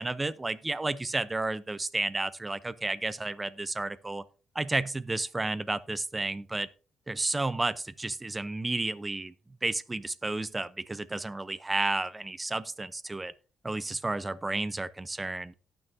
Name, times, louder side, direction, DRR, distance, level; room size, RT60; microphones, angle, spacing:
voice 1, 0.0-4.2 4.5-6.7 7.1-9.3 9.6-13.3 13.6-15.5, right 2 dB, 20° right, 0.6 m, -32 dB
18.0 x 6.1 x 2.7 m
cardioid pair, 90°, 0 cm